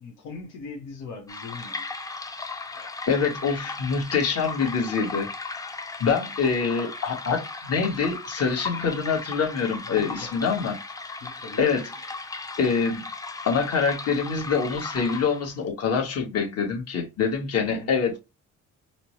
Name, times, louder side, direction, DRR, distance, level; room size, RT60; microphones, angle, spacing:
voice 1, 0.0-1.8 9.9-10.3 11.2-11.6 17.6-17.9, left 4 dB, 85° left, 1.1 m, -40 dB
sound 1, 1.3-15.6, left 3 dB, 10° left, 0.4 m, -37 dB
voice 2, 2.7-5.3 6.0-11.2 11.6-12.1 12.6-13.1 13.4-18.2, left 5 dB, 55° left, 1.3 m, -25 dB
4.2 x 2.1 x 3.0 m
cardioid pair, 90°, 30 cm